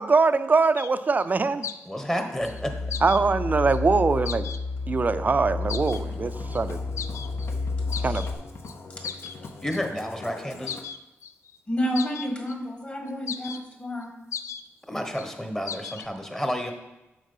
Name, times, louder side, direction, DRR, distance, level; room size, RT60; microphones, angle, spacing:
voice 1, 0.0-1.7 3.0-4.5 4.9-6.8 8.0-8.3, right 4 dB, 35° right, 12 dB, 0.4 m, -22 dB
sound 1, 0.6-0.9 1.2-1.3 1.6-1.8 2.5-2.6 2.9-3.2 3.7-3.8 4.3-4.6 5.7-6.0 6.5-6.6 7.0-7.5 7.9-8.3 8.7-8.8 9.0-10.1 10.6-11.6 12.0-12.6 13.1-13.6 14.0-14.1 14.3-14.6 15.0-15.3 15.7-16.1, left 7 dB, 80° left, 0.4 m, -36 dB
voice 2, 1.9-2.7 9.6-10.8 14.9-16.7, equal, 10° left, 5 dB, 1.0 m, -30 dB
sound 2, 2.4-8.3, left 3 dB, 45° left, 1.2 m, -31 dB
Musical instrument, 5.8-10.8, left 3 dB, 60° left, 0.9 m, -43 dB
voice 3, 11.7-14.2, equal, 30° left, 2 dB, 1.7 m, -30 dB
7.4 x 4.7 x 5.5 m, 0.98 s
wide cardioid pair, 95°, 5 cm